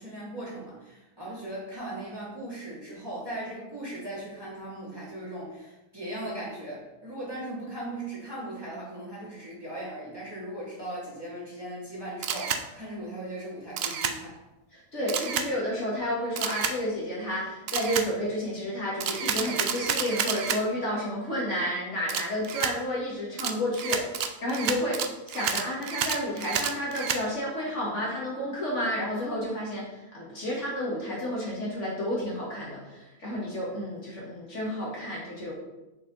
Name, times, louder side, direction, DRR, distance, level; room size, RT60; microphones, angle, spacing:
voice 1, 0.0-14.4, right 1 dB, 15° right, -8 dB, 2.7 m, -38 dB
Camera, 12.2-12.6 13.8-14.2 15.1-15.5 16.4-16.8 17.7-18.1 19.0-20.6 22.1-22.7 23.4-27.2, right 7 dB, 65° right, 0.6 m, -30 dB
voice 2, 14.7-35.5, equal, 50° left, -5 dB, 2.0 m, -31 dB
6.4 x 5.9 x 4.0 m, 1.0 s
omnidirectional pair, 1.6 m